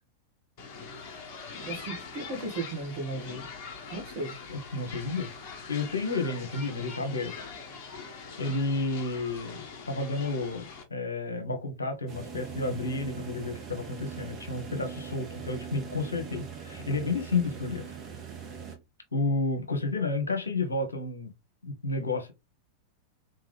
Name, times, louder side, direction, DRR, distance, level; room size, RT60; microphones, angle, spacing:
sound 1, 0.6-10.8, left 5 dB, 45° left, 1.5 m, -43 dB
voice 1, 1.7-3.5 3.9-4.3, right 2 dB, 45° right, 1.9 m, -35 dB
voice 2, 4.5-5.3 5.7-7.3 8.1-17.9 19.1-21.3 21.6-22.3, left 3 dB, 75° left, 1.0 m, -31 dB
sound 2, 12.1-18.7, right 7 dB, 30° right, 1.5 m, -41 dB
3.8 x 3.5 x 3.4 m
figure-of-eight pair, 90°, 0 cm